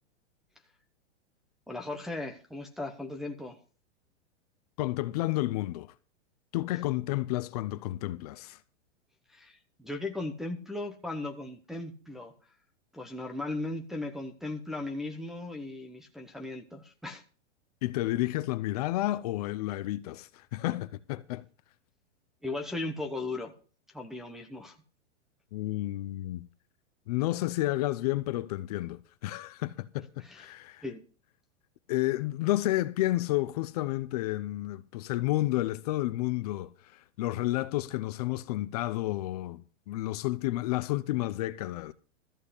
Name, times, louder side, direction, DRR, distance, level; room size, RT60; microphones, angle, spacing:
voice 1, 1.7-3.6 9.3-12.3 12.9-17.2 22.4-23.5 23.9-24.8 30.2-30.5 30.8-31.0, left 2 dB, ahead, 0.8 m, -37 dB
voice 2, 4.8-5.9 6.5-8.6 17.8-21.4 25.5-26.5 27.1-30.8 31.9-36.7 37.2-41.9, left 17 dB, 35° left, 0.6 m, -31 dB
14.0 x 5.5 x 8.2 m
supercardioid pair, 160°, 36 cm